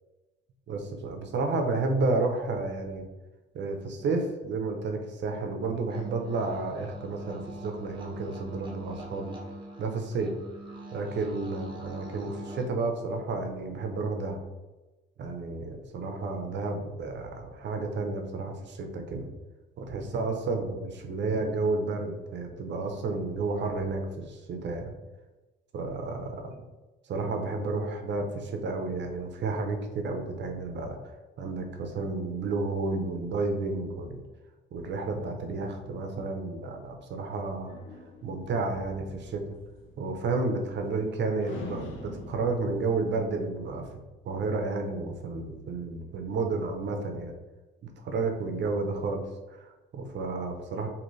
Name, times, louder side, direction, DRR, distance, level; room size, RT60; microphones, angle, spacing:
voice 1, 0.7-3.1 3.5-9.4 9.8-10.3 10.9-14.4 15.2-19.3 19.8-24.9 25.7-26.6 27.1-34.2 34.7-37.7 38.2-39.4 40.0-43.9 44.2-47.3 47.8-50.9, right 3 dB, 65° right, 4 dB, 0.7 m, -31 dB
sound 1, 5.9-12.7, right 1 dB, 25° right, 1.0 m, -43 dB
sound 2, 37.7-41.1 41.4-44.1, left 2 dB, 85° left, 0.7 m, -46 dB
4.0 x 2.8 x 3.2 m, 1.1 s
cardioid pair, 90°, 20 cm